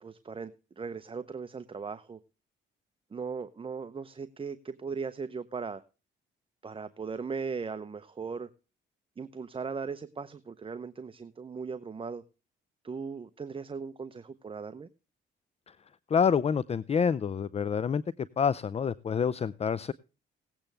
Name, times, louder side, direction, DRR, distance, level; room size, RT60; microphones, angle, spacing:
voice 1, 0.0-2.2 3.1-5.8 6.6-8.5 9.2-12.2 12.8-14.9, right 5 dB, 25° right, 0.8 m, -38 dB
voice 2, 16.1-18.0 18.4-19.9, left 6 dB, 30° left, 0.5 m, -27 dB
18.0 x 8.8 x 3.4 m
cardioid pair, 90°, 20 cm